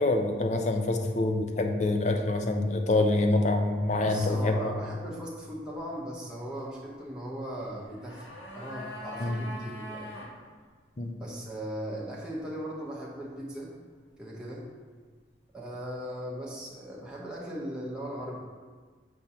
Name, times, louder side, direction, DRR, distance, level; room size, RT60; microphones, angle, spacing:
voice 1, 0.0-4.8 9.2-9.4 11.0-11.1, left 2 dB, 40° left, 4 dB, 0.5 m, -26 dB
voice 2, 4.0-8.3 8.6-10.1 11.2-13.7 14.2-14.7 15.5-18.4, equal, 5° right, -6 dB, 0.9 m, -38 dB
sound 1, 7.7-10.3 10.6-10.7, equal, 90° left, 1.4 m, -42 dB
7.1 x 2.6 x 5.6 m, 1.5 s
head